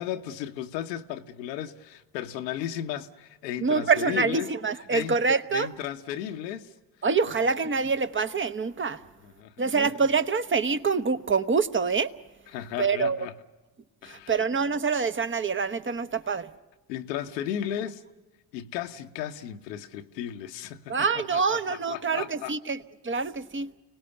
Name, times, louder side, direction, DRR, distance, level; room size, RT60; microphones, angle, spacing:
voice 1, 0.0-4.5 4.9-5.2 5.5-6.7 9.2-9.5 12.5-13.3 14.0-14.3 16.9-18.0 18.5-22.5, left 10 dB, 80° left, 1.1 m, -35 dB
voice 2, 3.6-5.7 7.0-9.0 9.6-12.1 12.8-13.3 14.0-16.5 20.9-23.7, right 5 dB, 25° right, 1.1 m, -26 dB
30.0 x 19.0 x 6.8 m
figure-of-eight pair, 45°, 50 cm